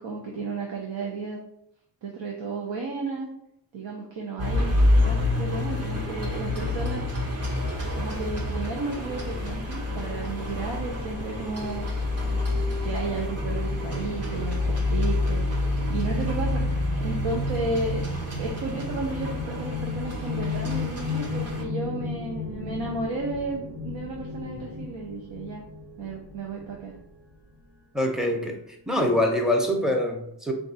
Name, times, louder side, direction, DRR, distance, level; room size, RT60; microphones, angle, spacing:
voice 1, 0.0-1.4 2.0-3.3 3.7-4.7 5.0-7.0 7.9-11.9 12.3-12.4 12.8-15.4 15.9-18.0 18.4-25.6 26.0-26.9, right 3 dB, 85° right, -1 dB, 0.7 m, -33 dB
sound 1, 4.4-21.6, left 2 dB, 35° right, 0.7 m, -28 dB
sound 2, 9.9-27.0, left 1 dB, 70° right, 1.2 m, -34 dB
voice 2, 27.9-28.6 28.9-30.5, left 1 dB, ahead, 2 dB, 0.5 m, -24 dB
3.8 x 2.3 x 4.0 m, 0.75 s
wide cardioid pair, 130°, 45 cm